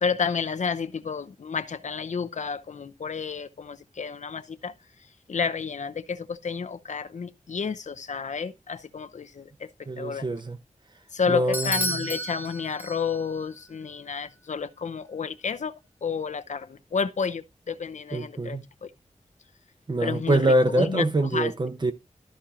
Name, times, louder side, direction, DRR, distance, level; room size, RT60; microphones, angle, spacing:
voice 1, 0.0-4.7 5.3-9.7 10.0-10.3 11.1-15.7 16.0-18.9 20.0-21.0 21.3-21.5, left 5 dB, 70° left, 0.7 m, -30 dB
voice 2, 9.9-10.6 11.3-12.1 18.1-18.6 19.9-21.9, right 1 dB, 35° right, 1.0 m, -24 dB
Bell / Doorbell, 11.5-13.4, equal, 15° right, 1.4 m, -31 dB
13.0 x 4.4 x 5.0 m
wide cardioid pair, 105°, 13 cm